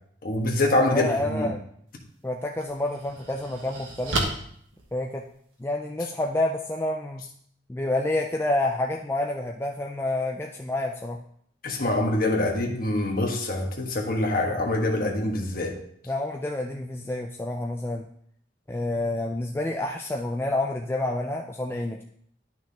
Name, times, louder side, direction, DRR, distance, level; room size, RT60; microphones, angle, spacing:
voice 1, 0.2-1.5 11.6-15.8, left 2 dB, 45° left, 0 dB, 1.4 m, -25 dB
voice 2, 0.9-1.6 2.2-4.2 4.9-5.2 5.6-7.2 7.7-11.2 16.1-18.1 18.7-22.0, left 2 dB, 10° left, 1 dB, 0.4 m, -28 dB
sound 1, 1.9-2.0 2.6-5.6, right 2 dB, 85° right, 1.4 m, -33 dB
11.0 x 5.9 x 2.9 m, 0.65 s
head